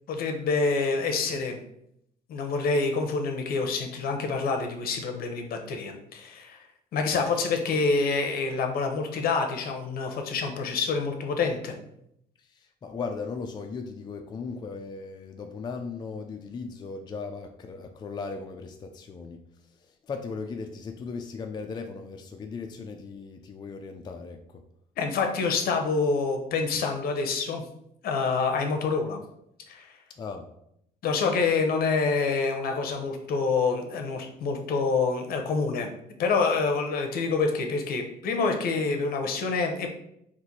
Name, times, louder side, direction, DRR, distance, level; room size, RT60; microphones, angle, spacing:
voice 1, 0.1-1.6 2.3-6.6 6.9-11.7 25.0-27.6 28.0-29.2 29.7-29.9 31.0-35.9 36.2-39.9, left 4 dB, 60° left, 4 dB, 0.8 m, -27 dB
voice 2, 12.4-19.4 19.8-24.6 30.2-30.5, left 4 dB, 25° left, 4 dB, 0.4 m, -37 dB
4.3 x 2.5 x 4.1 m, 0.75 s
cardioid pair, 110°, 17 cm